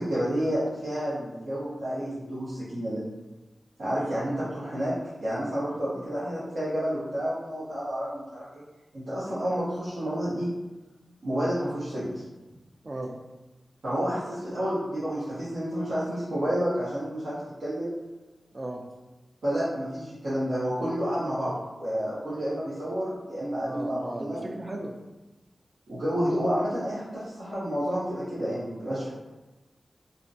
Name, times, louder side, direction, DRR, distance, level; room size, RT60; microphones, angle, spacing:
voice 1, 0.0-3.0 3.8-4.9 5.2-8.6 8.9-10.5 11.2-12.1 13.8-17.9 19.4-21.5 21.8-24.5 25.9-29.1, equal, 85° right, -12 dB, 0.7 m, -30 dB
voice 2, 23.6-24.9, right 1 dB, 40° right, 2 dB, 0.4 m, -36 dB
2.5 x 2.1 x 2.6 m, 1.1 s
wide cardioid pair, 70°, 0 cm